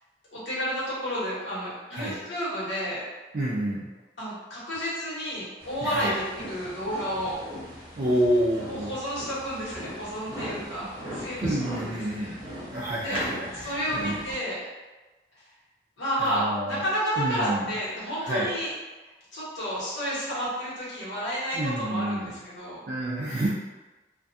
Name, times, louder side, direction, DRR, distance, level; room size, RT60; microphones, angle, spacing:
voice 1, 0.3-3.0 4.2-7.4 8.7-12.3 13.0-13.2 13.6-14.6 16.0-18.7 19.3-22.8, equal, 85° left, -9 dB, 1.3 m, -31 dB
voice 2, 3.3-3.9 5.8-6.1 8.0-8.9 10.8-10.9 11.4-12.4 12.7-14.2 16.2-16.8 17.2-17.7 18.2-18.5 21.5-22.3 22.9-23.5, right 1 dB, 50° right, -7 dB, 0.4 m, -28 dB
sound 1, 5.6-14.3, equal, 30° right, 0.8 m, -39 dB
2.5 x 2.3 x 2.6 m, 1.2 s
head